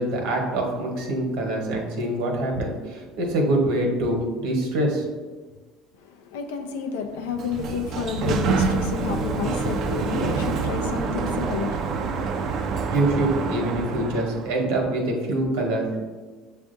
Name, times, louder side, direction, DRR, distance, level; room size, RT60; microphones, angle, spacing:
voice 1, 0.0-5.1 12.9-16.0, right 1 dB, 75° right, 1.0 m, -25 dB
voice 2, 6.0-12.6, left 6 dB, 90° left, 0.5 m, -30 dB
Sliding door, 7.2-14.6, right 5 dB, 55° right, 0.4 m, -27 dB
7.1 x 2.4 x 2.5 m
supercardioid pair, 95°, 0 cm